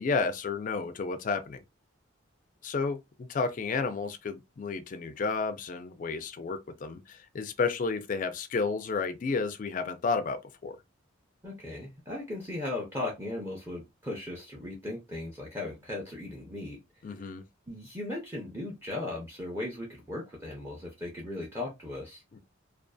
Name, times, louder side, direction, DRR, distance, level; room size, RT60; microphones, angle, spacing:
voice 1, 0.0-1.6 2.6-10.7 17.0-17.4 22.3-22.4, left 4 dB, 40° left, 0.3 m, -31 dB
voice 2, 11.4-16.8 17.7-22.2, left 2 dB, 10° right, 0.5 m, -37 dB
2.5 x 2.3 x 2.2 m
head